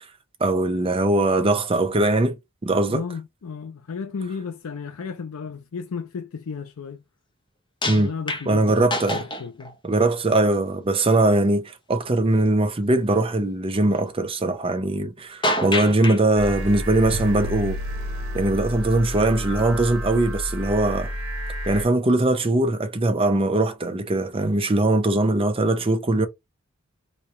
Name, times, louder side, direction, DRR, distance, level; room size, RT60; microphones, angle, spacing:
voice 1, 0.4-2.4 2.6-3.0 7.9-8.1 8.5-9.2 9.8-17.8 18.3-21.1 21.7-26.3, right 2 dB, 25° right, 0.6 m, -21 dB
voice 2, 2.9-7.0 7.8-9.8, left 5 dB, 90° left, 0.5 m, -34 dB
sound 1, 7.8-9.7 10.4-10.5 15.4-16.2 17.7-17.8, left 1 dB, 25° left, 0.7 m, -27 dB
Already here..., 16.4-21.8, equal, 70° right, 1.4 m, -30 dB
3.1 x 2.3 x 4.1 m
head